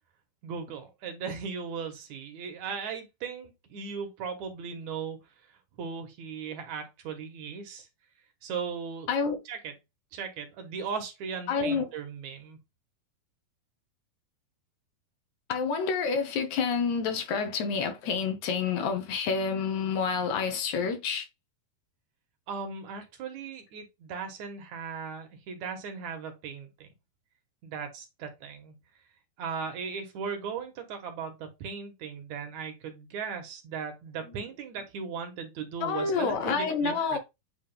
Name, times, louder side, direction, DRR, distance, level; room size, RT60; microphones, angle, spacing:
voice 1, 0.4-5.2 5.8-7.9 8.4-9.1 9.5-9.7 10.1-12.6 22.5-26.9 27.6-28.8 29.4-37.2, right 6 dB, 65° right, 2.2 m, -37 dB
voice 2, 11.5-11.9 15.5-21.3 35.8-37.2, left 5 dB, 65° left, 2.1 m, -28 dB
8.9 x 3.1 x 3.5 m
omnidirectional pair, 4.2 m